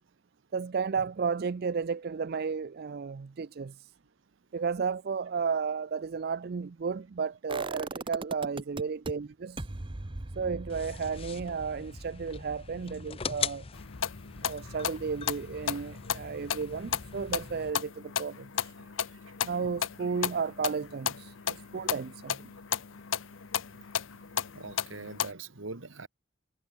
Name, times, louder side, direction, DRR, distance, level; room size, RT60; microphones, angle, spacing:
voice 1, 0.5-3.9 4.5-9.7 10.4-13.7 14.4-18.7 19.4-22.5, right 5 dB, 50° right, 0.4 m, -33 dB
sound 1, 7.5-9.1 9.6-15.4 15.7-15.8, right 2 dB, 25° right, 0.8 m, -41 dB
sound 2, 10.7-17.7, left 7 dB, 30° left, 0.5 m, -41 dB
sound 3, 13.7-25.3, left 8 dB, 80° left, 0.8 m, -35 dB
voice 2, 24.6-26.1, right 3 dB, 75° right, 1.9 m, -42 dB
head